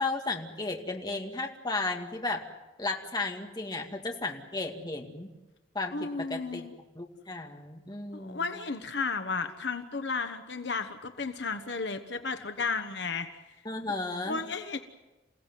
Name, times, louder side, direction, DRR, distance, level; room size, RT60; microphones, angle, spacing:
voice 1, 0.0-2.5 2.8-5.3 5.7-6.7 7.0-8.5 13.7-14.4, left 3 dB, 20° left, 2 dB, 2.2 m, -34 dB
voice 2, 5.9-6.7 8.1-13.3 14.2-14.8, left 4 dB, 65° left, 7 dB, 1.2 m, -33 dB
28.5 x 16.5 x 9.3 m, 1.1 s
head